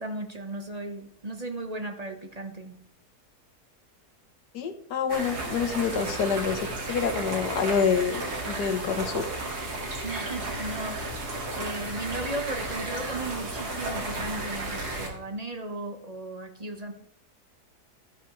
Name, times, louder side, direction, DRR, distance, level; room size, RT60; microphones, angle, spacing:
voice 1, 0.0-2.8 10.0-11.1 11.6-16.9, right 2 dB, 25° right, 4 dB, 1.3 m, -36 dB
voice 2, 4.5-9.3, left 6 dB, 90° left, 7 dB, 1.7 m, -27 dB
sound 1, 5.1-15.1, right 2 dB, 80° right, 2.7 m, -33 dB
13.0 x 11.0 x 3.2 m, 0.70 s
omnidirectional pair, 1.7 m